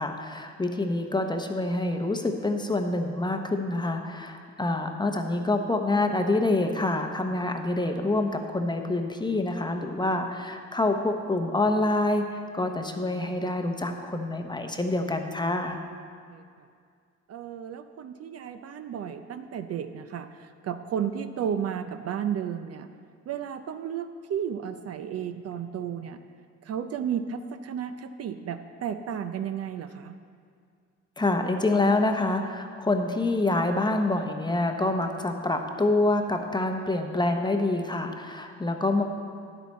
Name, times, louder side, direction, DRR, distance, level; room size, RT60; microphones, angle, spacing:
voice 1, 0.0-15.8 31.2-39.0, left 2 dB, 15° left, 5 dB, 0.8 m, -26 dB
voice 2, 17.3-22.9 23.3-26.2 26.6-30.2, right 8 dB, 55° right, 9 dB, 0.5 m, -33 dB
10.0 x 8.0 x 4.2 m, 2.2 s
cardioid pair, 90°, 30 cm